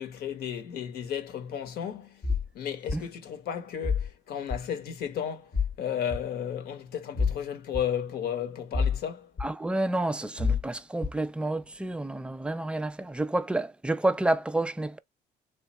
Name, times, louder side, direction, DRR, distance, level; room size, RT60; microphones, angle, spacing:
voice 1, 0.0-2.3 2.5-9.3, left 9 dB, 65° left, 0.9 m, -34 dB
sound 1, 2.2-2.5 2.9-3.0 3.8-4.1 4.5-4.6 5.5-5.7 6.1-6.2 7.2-7.4 7.7-7.8 8.7-9.0 9.4-9.5 10.4-10.6 11.0-11.2, left 5 dB, 35° left, 0.7 m, -27 dB
voice 2, 9.4-15.0, right 2 dB, 5° right, 0.4 m, -29 dB
3.4 x 2.2 x 4.0 m
cardioid pair, 110°, 17 cm